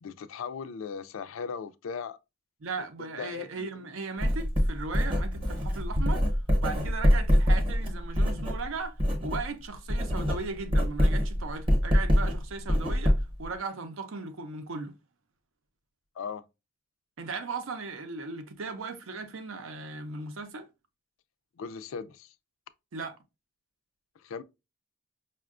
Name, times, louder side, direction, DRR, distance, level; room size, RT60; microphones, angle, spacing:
voice 1, 0.0-2.2 3.0-3.7 16.2-16.4 21.6-22.3 24.2-24.4, left 6 dB, 80° left, 0.3 m, -38 dB
voice 2, 2.6-6.2 6.6-14.9 17.2-20.7 22.9-23.2, right 4 dB, 80° right, 0.6 m, -37 dB
Writing, 4.2-9.5 9.8-13.5, equal, 25° right, 0.8 m, -25 dB
5.4 x 2.2 x 2.4 m
head